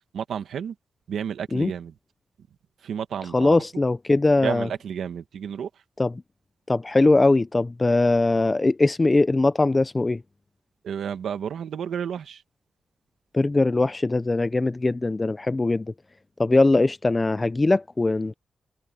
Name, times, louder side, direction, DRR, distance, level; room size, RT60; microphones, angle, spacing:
voice 1, 0.1-0.7 1.1-1.9 2.8-3.5 4.4-5.7 10.8-12.4, right 8 dB, 90° right, 1.4 m, -31 dB
voice 2, 3.3-4.7 6.0-6.1 6.7-10.2 13.3-15.9 16.4-18.3, left 2 dB, 20° left, 0.3 m, -21 dB
wide cardioid pair, 170°, 0 cm